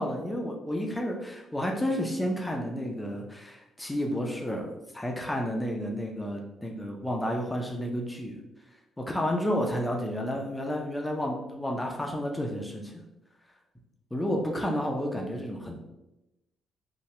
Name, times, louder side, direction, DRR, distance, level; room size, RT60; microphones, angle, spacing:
voice 1, 0.0-8.4 9.0-12.9 14.1-15.8, equal, 10° left, 1 dB, 0.5 m, -31 dB
2.7 x 2.2 x 3.1 m, 0.93 s
cardioid pair, 90°, 0 cm